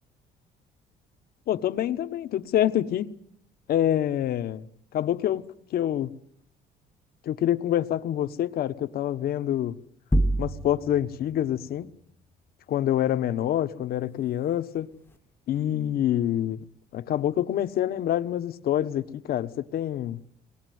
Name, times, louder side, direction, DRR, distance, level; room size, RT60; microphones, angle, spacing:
voice 1, 1.5-3.1 3.7-4.7 4.9-5.4 5.7-6.1 7.2-9.8 10.4-11.9 12.7-14.9 15.5-16.6 16.9-20.2, left 11 dB, 65° left, 1.2 m, -26 dB
sound 1, 10.1-11.1, right 1 dB, 10° left, 1.1 m, -24 dB
23.0 x 19.5 x 9.4 m
cardioid pair, 110°, 17 cm